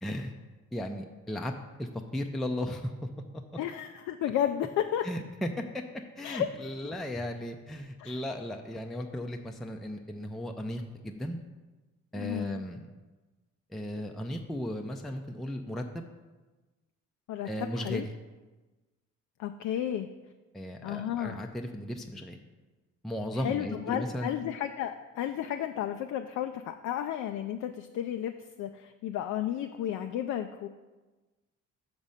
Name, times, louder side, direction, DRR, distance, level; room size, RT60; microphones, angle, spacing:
voice 1, 0.0-0.3 0.7-1.5 1.8-2.9 5.0-5.8 6.2-11.4 12.1-12.9 13.7-16.0 17.4-18.1 20.5-22.4 23.0-24.3, left 1 dB, ahead, 3 dB, 0.4 m, -36 dB
voice 2, 3.6-5.1 6.2-6.5 8.0-8.2 12.1-12.6 17.3-18.1 19.4-20.1 20.8-21.4 23.3-30.7, left 10 dB, 70° left, 6 dB, 0.4 m, -33 dB
6.1 x 5.2 x 5.5 m, 1.2 s
cardioid pair, 90°, 30 cm